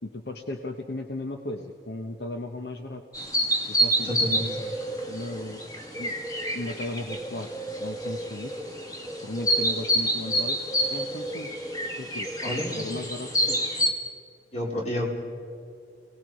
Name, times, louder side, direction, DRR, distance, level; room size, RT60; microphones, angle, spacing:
voice 1, 0.0-3.0 3.7-4.5 5.1-5.6 6.0-6.1 6.5-7.5 7.8-8.5 9.2-10.6 10.9-11.5 12.0-12.3 12.6-13.7, left 2 dB, 70° left, 4 dB, 1.1 m, -36 dB
sound 1, 3.1-13.9, equal, 20° left, 2.0 m, -28 dB
voice 2, 4.0-4.4 12.4-12.7 14.5-15.1, left 1 dB, 35° left, -2 dB, 4.4 m, -29 dB
28.5 x 18.5 x 4.9 m, 2.4 s
head